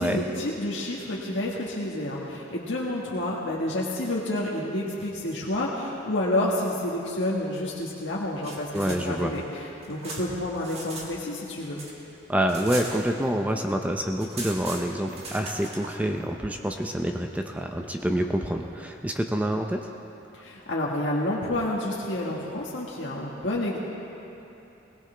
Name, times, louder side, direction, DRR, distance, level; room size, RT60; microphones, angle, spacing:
voice 1, 0.0-9.4 9.9-11.8 20.4-23.8, left 1 dB, 70° left, -5 dB, 1.6 m, -29 dB
sound 1, 8.3-11.1 11.4-13.5 13.8-13.9 14.1-15.9, right 2 dB, 35° right, 2.1 m, -39 dB
voice 2, 8.7-9.3 12.3-19.9, right 1 dB, 10° right, 3 dB, 0.6 m, -27 dB
20.5 x 18.5 x 3.4 m, 2.9 s
head